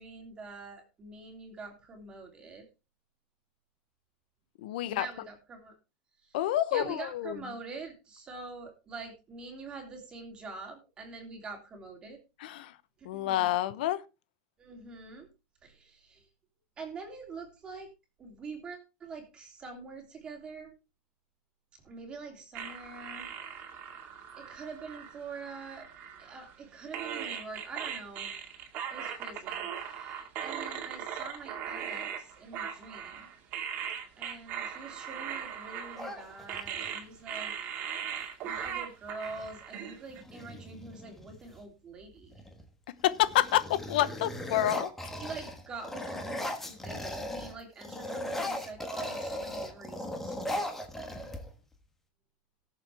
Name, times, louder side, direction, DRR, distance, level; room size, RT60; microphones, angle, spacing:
voice 1, 0.0-2.6 4.8-5.8 6.2-6.4 6.7-12.2 13.0-13.5 14.6-15.3 15.6-16.2 16.8-17.9 18.2-20.7 21.8-23.4 24.4-25.9 26.2-28.3 28.9-33.3 34.2-37.5 38.4-42.4 45.2-50.7, right 4 dB, 20° right, 3.1 m, -45 dB
voice 2, 4.6-5.1 6.3-7.5 12.4-12.7 13.0-14.0 43.0-44.9, left 13 dB, 80° left, 0.9 m, -28 dB
sound 1, 22.5-26.6 26.9-40.2, right 8 dB, 40° right, 2.1 m, -39 dB
sound 2, 36.0-36.9 38.6-38.7 39.0-39.5 40.1-41.6 42.2-42.6 43.0-47.5 47.8-51.7, left 1 dB, 5° left, 1.5 m, -38 dB
18.5 x 7.1 x 3.4 m
supercardioid pair, 170°, 5 cm